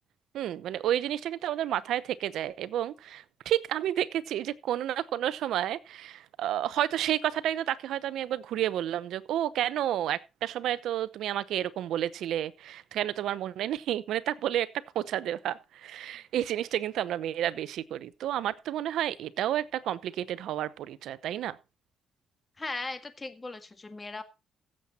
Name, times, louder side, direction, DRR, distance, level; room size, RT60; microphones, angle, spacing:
voice 1, 0.3-21.6, right 11 dB, 80° right, 0.7 m, -31 dB
voice 2, 22.6-24.2, left 3 dB, 25° left, 1.8 m, -38 dB
15.5 x 7.6 x 4.1 m
cardioid pair, 90°, 0 cm